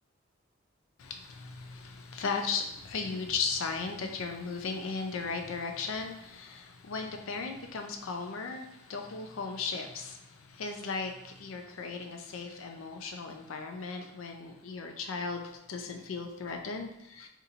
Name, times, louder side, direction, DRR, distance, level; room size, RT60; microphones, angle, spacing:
voice 1, 1.0-17.3, left 4 dB, 75° left, 4 dB, 0.5 m, -36 dB
2.6 x 2.6 x 4.2 m, 0.79 s
head